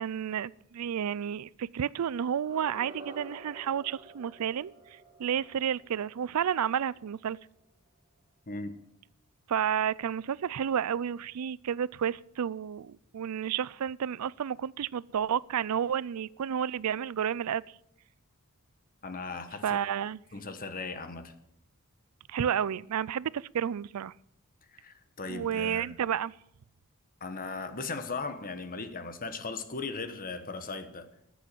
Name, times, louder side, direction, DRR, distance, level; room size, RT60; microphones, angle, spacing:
voice 1, 0.0-4.7 5.2-7.4 9.5-17.6 19.6-20.2 22.3-24.1 25.3-26.3, right 8 dB, 80° right, 22 dB, 0.4 m, -31 dB
sound 1, 2.3-7.2, right 2 dB, 30° right, 2.3 m, -50 dB
voice 2, 19.0-19.8 20.3-21.3 24.7-26.0 27.2-31.1, left 3 dB, 40° left, 10 dB, 1.2 m, -38 dB
14.5 x 8.5 x 7.6 m, 0.78 s
head